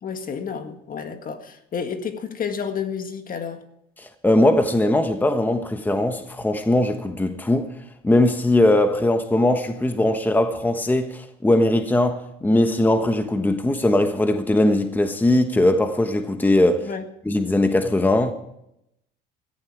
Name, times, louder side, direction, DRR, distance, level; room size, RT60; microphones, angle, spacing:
voice 1, 0.0-3.6 16.8-17.0, left 6 dB, 40° left, 1.8 m, -30 dB
voice 2, 4.0-7.7 8.0-16.9 17.2-18.3, left 1 dB, 10° left, 1.2 m, -20 dB
16.5 x 15.0 x 4.7 m
cardioid pair, 105°, 21 cm